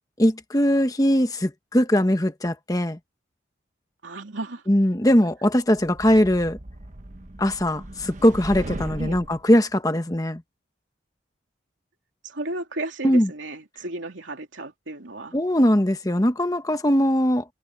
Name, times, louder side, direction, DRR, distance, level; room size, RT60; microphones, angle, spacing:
voice 1, 0.2-3.0 4.7-6.6 7.4-10.4 13.0-13.3 15.3-17.4, equal, 20° left, 1.1 m, -20 dB
voice 2, 4.0-4.6 9.0-9.2 12.2-15.4, right 2 dB, 90° right, 3.1 m, -34 dB
sound 1, 5.8-9.4, right 1 dB, 40° right, 1.1 m, -37 dB
head